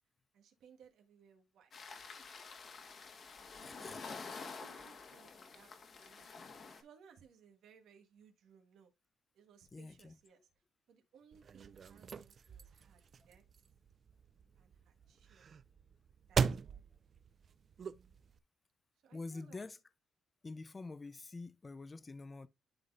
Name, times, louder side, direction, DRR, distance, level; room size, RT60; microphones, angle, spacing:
voice 1, 0.3-1.7 3.6-6.3 6.7-8.9 9.3-10.5 10.9-13.4 14.6-15.5 16.3-16.8 19.0-19.6, right 7 dB, 80° right, 1.6 m, -64 dB
sound 1, 1.7-6.8, left 4 dB, 50° left, 1.6 m, -49 dB
voice 2, 3.6-4.0 9.7-10.1 12.5-12.6 19.1-19.8 20.4-22.5, left 3 dB, 25° left, 0.6 m, -47 dB
sound 2, 11.3-18.4, right 6 dB, 50° right, 0.5 m, -40 dB
11.5 x 4.0 x 2.5 m
cardioid pair, 90°, 0 cm